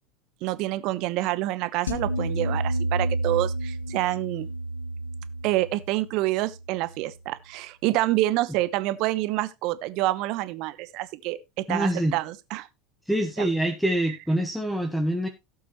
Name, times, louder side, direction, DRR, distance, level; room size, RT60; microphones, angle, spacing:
voice 1, 0.4-4.5 5.4-12.7 13.4-13.5, right 17 dB, 55° right, 1.0 m, -27 dB
sound 1, 1.9-7.1, right 1 dB, 85° left, 1.2 m, -30 dB
voice 2, 11.7-12.2 13.1-15.3, right 1 dB, ahead, 1.5 m, -25 dB
17.5 x 5.9 x 3.1 m
hypercardioid pair, 80°, 0 cm